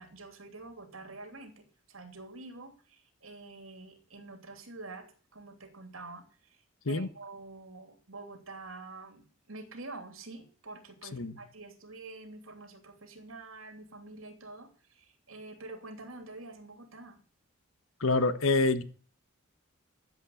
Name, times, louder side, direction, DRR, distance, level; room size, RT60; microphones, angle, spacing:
voice 1, 0.0-6.6 6.9-17.2, right 2 dB, 80° right, 3.1 m, -47 dB
voice 2, 18.0-18.8, left 3 dB, 80° left, 1.4 m, -26 dB
14.0 x 7.8 x 8.5 m
head